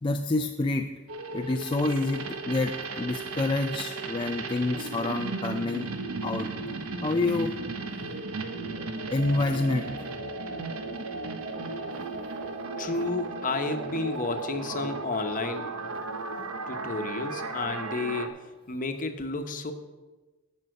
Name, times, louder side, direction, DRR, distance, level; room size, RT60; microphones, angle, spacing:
voice 1, 0.0-0.9 1.3-5.9 6.2-6.5 7.0-7.6 9.1-10.1 16.4-16.5, left 2 dB, 25° left, 5 dB, 0.4 m, -28 dB
sound 1, 1.1-18.3, right 3 dB, 80° right, 1.0 m, -35 dB
voice 2, 12.8-15.7 16.7-19.7, left 3 dB, 40° left, 7 dB, 1.0 m, -32 dB
12.5 x 5.6 x 6.4 m, 1.2 s
head